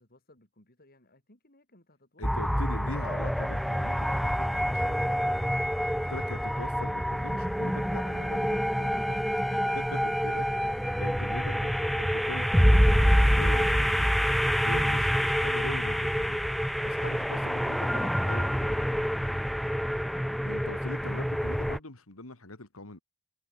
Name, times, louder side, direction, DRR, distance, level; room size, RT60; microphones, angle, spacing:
voice 1, 0.0-3.4, left 2 dB, 45° left, 6.7 m, -61 dB
voice 2, 2.2-5.5 6.1-19.0 20.4-23.0, left 2 dB, 90° left, 2.6 m, -42 dB
sound 1, 2.2-21.8, equal, ahead, 0.5 m, -27 dB
head